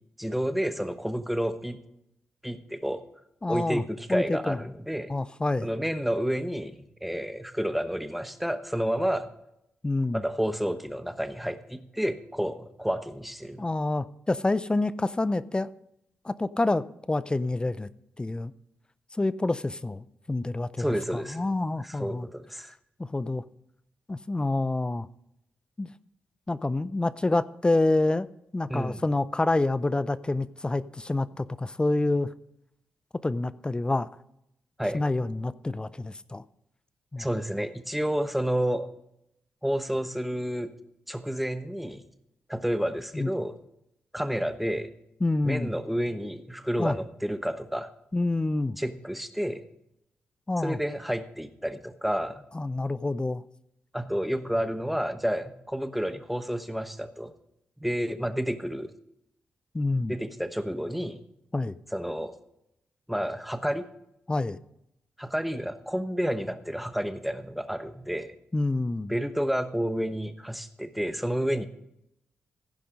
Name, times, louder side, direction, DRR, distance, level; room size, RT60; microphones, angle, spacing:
voice 1, 0.2-1.8 2.4-3.0 3.5-5.1 5.6-9.3 10.1-13.6 20.8-22.7 28.7-29.0 34.8-35.0 37.2-38.9 39.6-40.7 41.1-42.1 42.5-43.6 44.1-44.9 45.4-47.9 48.8-49.6 50.6-52.4 53.9-57.3 57.8-58.9 60.1-61.2 61.9-62.3 63.1-63.9 65.2-68.3 69.1-71.7, equal, ahead, 1.0 m, -30 dB
voice 2, 3.4-3.8 4.1-4.6 5.1-5.7 9.8-10.2 13.6-15.7 16.2-17.9 18.2-18.5 19.1-22.3 23.0-23.4 24.1-25.1 25.8-25.9 26.5-28.3 28.5-32.3 33.2-34.1 34.9-36.4 37.1-37.3 43.1-43.3 45.2-45.7 46.8-47.0 48.1-48.8 50.5-50.8 52.5-53.4 59.7-60.2 61.5-61.8 64.3-64.6 68.5-69.1, left 2 dB, 20° left, 0.4 m, -27 dB
15.5 x 5.4 x 5.1 m
cardioid pair, 60°, 4 cm